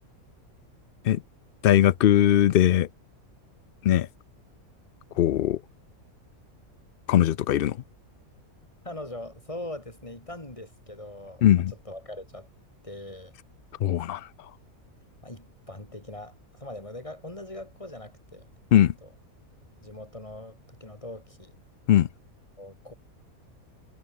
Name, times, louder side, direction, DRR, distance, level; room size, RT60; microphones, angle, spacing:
voice 1, 1.6-2.9 3.8-4.1 5.2-5.6 7.1-7.8 11.4-11.7 13.8-14.5 18.7-18.9 21.9-22.1, left 11 dB, 80° left, 0.5 m, -20 dB
voice 2, 8.8-11.5 11.9-12.5 12.8-13.3 15.2-18.5 19.0-19.1 19.8-21.5 22.6-22.9, left 1 dB, 20° left, 3.9 m, -41 dB
omnidirectional pair, 1.6 m